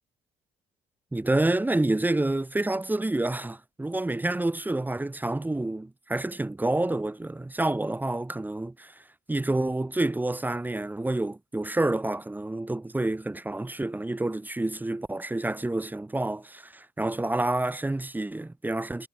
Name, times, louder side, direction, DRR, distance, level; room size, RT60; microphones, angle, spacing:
voice 1, 1.1-8.9 9.3-19.1, right 2 dB, 10° right, 2.1 m, -28 dB
cardioid pair, 110°, 17 cm